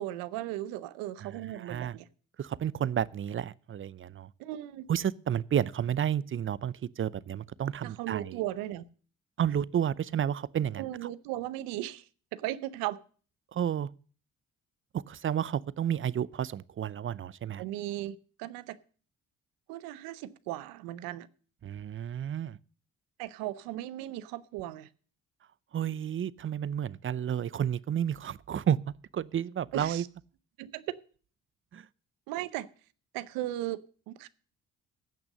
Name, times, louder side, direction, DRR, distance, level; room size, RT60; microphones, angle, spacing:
voice 1, 0.0-2.1 4.4-4.9 7.8-8.9 10.8-13.0 17.6-18.8 19.7-21.3 23.2-24.9 29.7-30.1 30.6-31.0 32.3-32.7 33.1-34.3, right 14 dB, 90° right, 0.7 m, -37 dB
voice 2, 1.2-2.0 2.4-4.3 4.9-8.4 9.4-10.9 13.5-13.9 14.9-17.6 21.6-22.6 25.7-28.8 29.1-30.0 31.7-31.9, right 9 dB, 40° right, 0.6 m, -31 dB
15.5 x 6.1 x 6.6 m
supercardioid pair, 65°, 33 cm